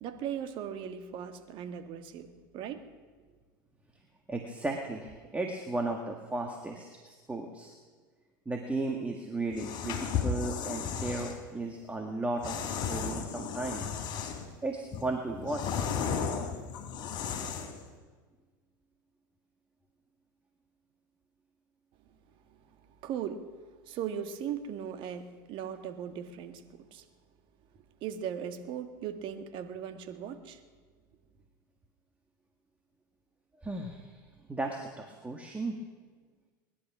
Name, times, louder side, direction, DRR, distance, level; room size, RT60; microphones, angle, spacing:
voice 1, 0.0-2.8 23.0-23.5 23.9-27.0 28.0-30.6, right 8 dB, 50° right, 7 dB, 1.7 m, -38 dB
voice 2, 4.3-7.7 8.5-14.0 14.6-15.8 33.6-34.2 34.5-35.8, right 2 dB, 10° right, 2 dB, 1.8 m, -35 dB
sound 1, 9.5-11.4 12.4-14.5 14.9-17.8, left 6 dB, 45° left, 3.1 m, -34 dB
20.5 x 11.5 x 6.1 m, 1.4 s
hypercardioid pair, 95°, 11 cm